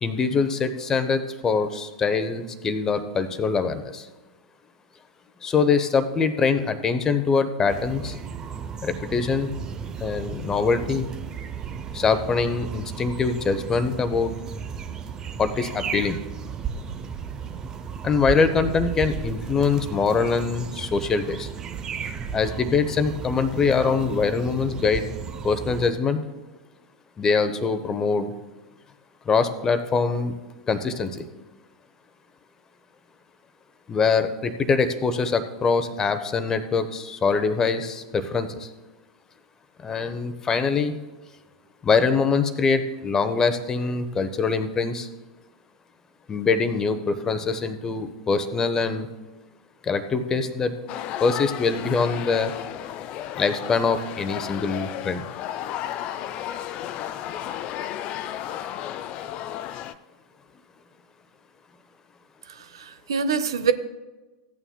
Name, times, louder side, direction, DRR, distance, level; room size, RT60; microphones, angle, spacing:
voice 1, 0.0-4.1 5.4-8.2 8.8-9.5 10.0-11.0 11.9-14.3 15.4-16.2 18.0-21.5 22.3-25.1 25.4-26.2 27.2-28.3 29.2-30.4 30.7-31.3 33.9-38.7 39.8-41.0 41.8-45.1 46.3-49.1 49.8-50.8 51.2-52.5 53.4-55.3, left 5 dB, 20° left, 10 dB, 0.8 m, -23 dB
sound 1, 7.7-25.9, right 7 dB, 25° right, 0.6 m, -34 dB
sound 2, 50.9-59.9, left 11 dB, 40° left, 0.4 m, -33 dB
voice 2, 62.5-63.7, right 6 dB, 65° right, 12 dB, 0.6 m, -25 dB
15.5 x 8.9 x 2.2 m, 1.2 s
figure-of-eight pair, 90°, 3 cm